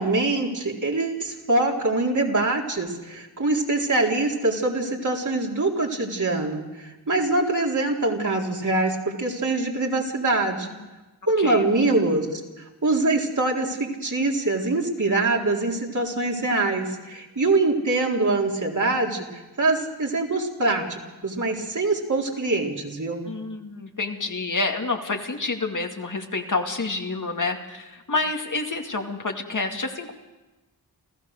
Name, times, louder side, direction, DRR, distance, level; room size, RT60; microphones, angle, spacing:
voice 1, 0.0-10.7 11.3-23.3, right 2 dB, 50° right, -1 dB, 3.9 m, -24 dB
voice 2, 23.3-30.1, left 3 dB, 55° left, 3 dB, 2.4 m, -28 dB
28.5 x 15.0 x 6.7 m, 1.1 s
cardioid pair, 45°, 38 cm